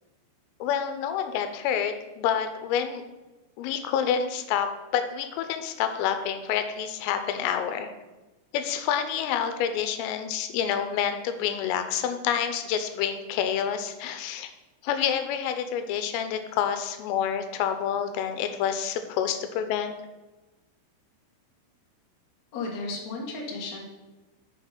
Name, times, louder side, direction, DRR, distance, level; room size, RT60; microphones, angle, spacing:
voice 1, 0.6-3.0 3.6-7.9 8.5-14.5 14.8-19.9, left 8 dB, 85° left, 8 dB, 3.3 m, -28 dB
voice 2, 22.5-23.8, left 3 dB, 70° left, -2 dB, 1.6 m, -34 dB
6.8 x 5.8 x 5.8 m, 1.1 s
omnidirectional pair, 5.8 m